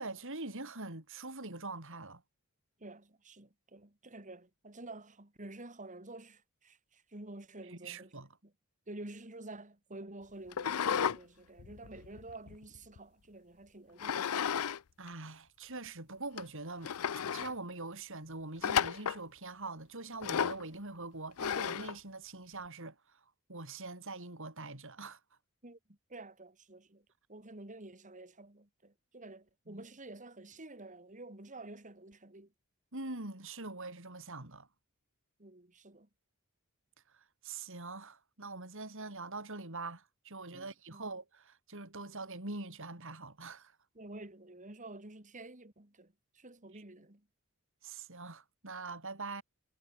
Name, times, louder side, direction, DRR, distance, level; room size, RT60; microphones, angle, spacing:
voice 1, 0.0-2.2 7.7-8.3 15.0-16.9 17.3-23.2 23.5-25.2 29.7-29.8 32.9-34.7 37.1-43.8 46.7-46.8 47.8-49.4, right 3 dB, 60° right, 5.0 m, -43 dB
voice 2, 2.8-8.1 8.4-8.5 8.9-14.5 25.6-25.8 26.1-32.5 35.4-36.1 40.5-41.1 43.9-47.2, right 2 dB, 35° right, 2.8 m, -50 dB
sound 1, 10.5-11.2 11.6-13.0 14.0-14.8 15.1-15.2 15.9-16.0 16.4-16.5 16.8-17.5 18.6-19.2 20.2-20.6 21.4-22.0, left 8 dB, 80° left, 0.6 m, -33 dB
head